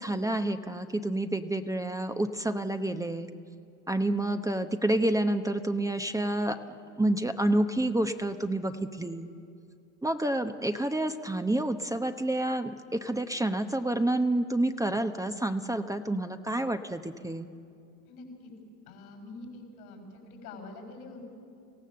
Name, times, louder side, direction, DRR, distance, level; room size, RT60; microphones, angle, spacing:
voice 1, 0.0-3.3 3.9-6.6 7.0-9.3 10.0-17.5, right 1 dB, 10° right, 7 dB, 0.9 m, -29 dB
voice 2, 18.1-18.5 18.8-21.2, left 3 dB, 85° left, 3 dB, 6.6 m, -45 dB
25.5 x 16.5 x 7.6 m, 2.5 s
hypercardioid pair, 85°, 43 cm